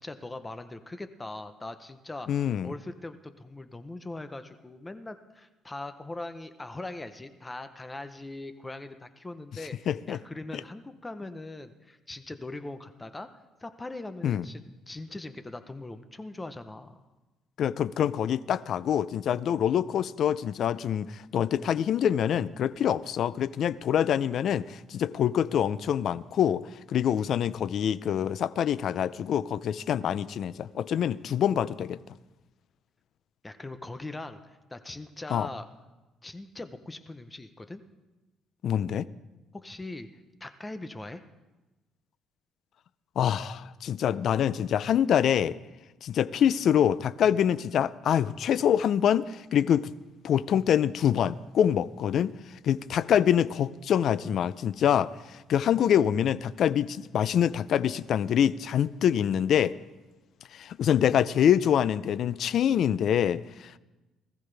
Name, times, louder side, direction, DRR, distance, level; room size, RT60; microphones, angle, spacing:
voice 1, 0.0-2.3 2.6-13.3 13.6-17.0 33.4-35.7 36.2-37.8 39.5-40.1 40.4-41.2, left 2 dB, 15° left, 10 dB, 0.7 m, -41 dB
voice 2, 2.3-2.7 9.9-10.2 14.2-14.5 17.6-26.6 26.9-32.0 35.3-35.5 38.6-39.1 43.2-45.5 46.0-49.9 50.2-52.3 52.6-55.1 55.5-59.7 60.5-63.8, left 9 dB, 55° left, 17 dB, 0.4 m, -25 dB
20.0 x 14.0 x 3.4 m, 1.1 s
cardioid pair, 125°, 0 cm